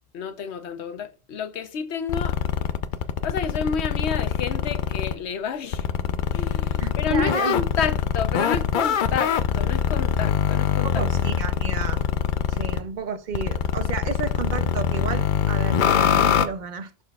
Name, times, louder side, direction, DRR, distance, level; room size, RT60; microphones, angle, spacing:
voice 1, 0.1-2.4 3.2-5.9 6.3-11.0, left 6 dB, 90° left, 1.0 m, -30 dB
sound 1, 2.1-5.2 5.7-12.8 13.3-16.5, left 8 dB, 60° left, 0.6 m, -23 dB
voice 2, 6.8-7.6 10.8-12.1 12.5-17.0, right 5 dB, 55° right, 0.6 m, -32 dB
11.5 x 4.0 x 2.3 m
omnidirectional pair, 1.1 m